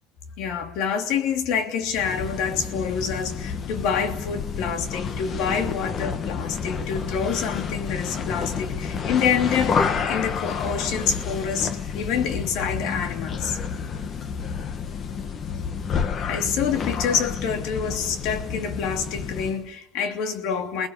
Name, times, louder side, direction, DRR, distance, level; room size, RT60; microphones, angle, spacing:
voice 1, 0.4-9.8 10.1-13.6 16.0-20.9, left 7 dB, 70° left, 3.0 m, -27 dB
sound 1, 1.9-19.6, left 6 dB, 30° left, 1.4 m, -30 dB
29.0 x 20.0 x 8.2 m
cardioid pair, 165°, 0 cm